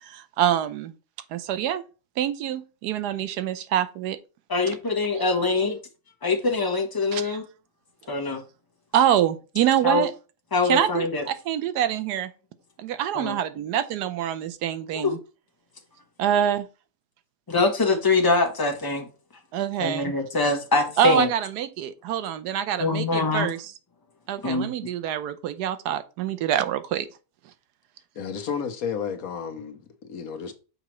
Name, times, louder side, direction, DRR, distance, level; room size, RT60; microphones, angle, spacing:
voice 1, 0.0-0.9 1.3-1.8 2.2-4.2 7.1-7.4 8.9-10.1 10.7-12.3 12.8-15.2 16.2-16.7 19.5-20.1 21.0-23.6 24.3-27.1, right 10 dB, 85° right, 1.2 m, -25 dB
voice 2, 4.5-5.8 6.2-7.4 8.1-8.4 9.8-10.0 10.5-11.2 13.1-13.4 14.9-15.1 17.5-19.1 19.8-21.3 22.8-23.5 24.4-24.7, left 3 dB, 15° left, 0.9 m, -23 dB
voice 3, 28.1-30.5, left 7 dB, 65° left, 1.2 m, -32 dB
6.6 x 4.8 x 3.1 m
omnidirectional pair, 1.7 m